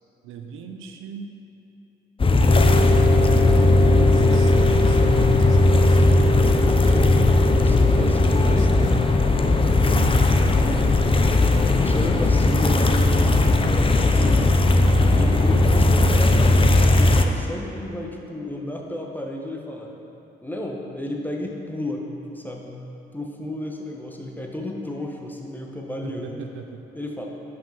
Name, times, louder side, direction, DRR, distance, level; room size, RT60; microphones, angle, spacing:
voice 1, 0.2-1.4 3.8-6.9 7.8-9.4 9.8-10.1 26.0-26.8, right 6 dB, 85° right, 5 dB, 0.5 m, -38 dB
sound 1, 2.2-17.2, left 2 dB, 25° left, 0.5 m, -17 dB
sound 2, 2.5-15.6, left 2 dB, 70° left, 0.7 m, -28 dB
voice 2, 6.7-7.1 7.5-9.1 10.5-11.2 11.7-14.5 15.0-19.9 20.4-22.1 22.3-22.8 23.1-26.5 26.9-27.3, left 1 dB, 10° left, 0 dB, 1.0 m, -32 dB
5.6 x 5.0 x 5.8 m, 2.9 s
supercardioid pair, 60°, 20 cm